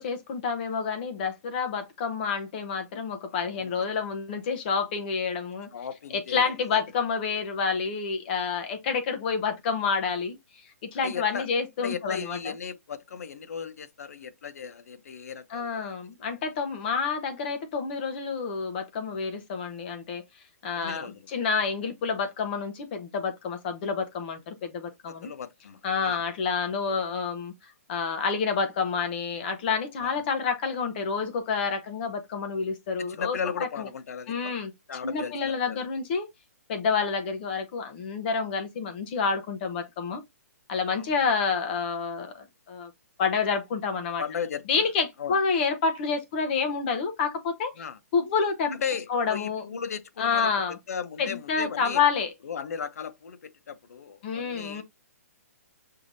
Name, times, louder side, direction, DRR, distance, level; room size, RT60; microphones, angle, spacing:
voice 1, 0.0-5.7 6.1-12.4 15.5-20.2 20.6-25.3 25.8-33.9 34.3-34.7 35.0-36.3 36.7-40.2 40.7-42.9 43.2-44.2 44.7-47.8 48.1-48.7 49.1-49.6 50.2-50.8 51.2-52.3 54.2-54.8, left 5 dB, 40° left, 1.1 m, -28 dB
voice 2, 3.3-3.8 5.7-6.8 11.0-11.5 11.8-15.9 20.8-21.3 25.1-26.2 30.0-30.2 33.1-34.5 34.9-35.9 40.9-41.1 44.2-44.8 45.2-45.4 47.8-48.0 48.8-50.5 50.9-52.0 52.4-54.8, left 7 dB, 75° left, 0.8 m, -36 dB
5.7 x 3.3 x 2.7 m
hypercardioid pair, 155°, 8 cm